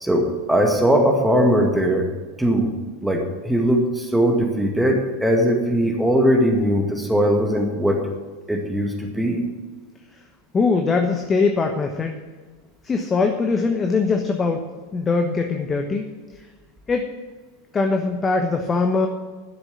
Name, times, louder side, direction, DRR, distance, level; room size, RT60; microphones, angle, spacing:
voice 1, 0.0-2.1 2.4-2.7 3.0-8.0 8.5-9.4, equal, 5° right, 1 dB, 2.0 m, -20 dB
voice 2, 10.5-12.2 12.8-14.6 14.9-16.1 16.9-17.1 17.7-19.1, left 4 dB, 20° left, 4 dB, 1.2 m, -21 dB
12.0 x 6.9 x 8.8 m, 1.3 s
figure-of-eight pair, 85°, 0 cm